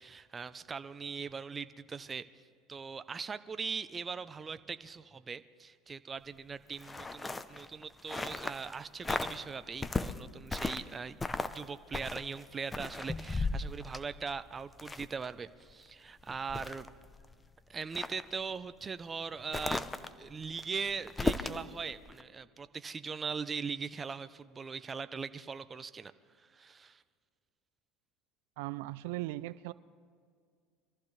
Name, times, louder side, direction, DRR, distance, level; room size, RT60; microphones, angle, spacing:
voice 1, 0.0-2.2 2.7-11.2 11.5-16.9 17.7-19.9 20.2-26.1 26.4-27.0, right 5 dB, 25° right, 13 dB, 0.6 m, -40 dB
sound 1, 6.7-8.8 9.0-9.4 9.8-10.9 11.2-11.6 11.9-15.3 15.7-15.8 16.2-17.3 17.8-18.3 19.5-21.7 22.1-22.2, left 3 dB, 15° left, 0.7 m, -36 dB
voice 2, 28.6-29.7, right 18 dB, 80° right, 17 dB, 0.4 m, -38 dB
24.5 x 14.5 x 3.2 m, 2.1 s
supercardioid pair, 105°, 0 cm